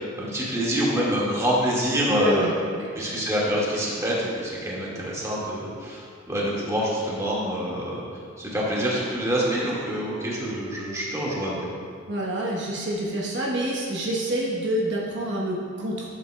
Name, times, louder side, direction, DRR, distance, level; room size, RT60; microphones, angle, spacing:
voice 1, 0.0-2.5 2.9-8.0 8.4-11.7, equal, 15° right, -6 dB, 1.7 m, -26 dB
voice 2, 2.1-2.9 12.1-16.1, right 1 dB, 65° right, -4 dB, 1.0 m, -27 dB
12.0 x 7.5 x 2.2 m, 2.2 s
head